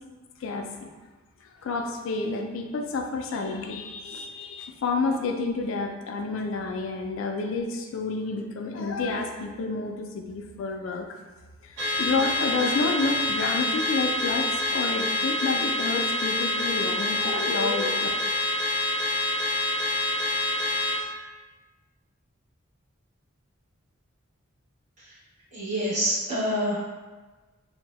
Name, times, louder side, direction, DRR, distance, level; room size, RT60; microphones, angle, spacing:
voice 1, 0.4-0.9 1.6-11.1 11.6-18.1, left 3 dB, 70° left, 4 dB, 0.3 m, -29 dB
Car / Alarm, 11.8-21.0, left 1 dB, 55° right, 0.7 m, -27 dB
voice 2, 25.5-26.8, equal, 35° right, -10 dB, 1.0 m, -26 dB
2.6 x 2.0 x 3.0 m, 1.3 s
head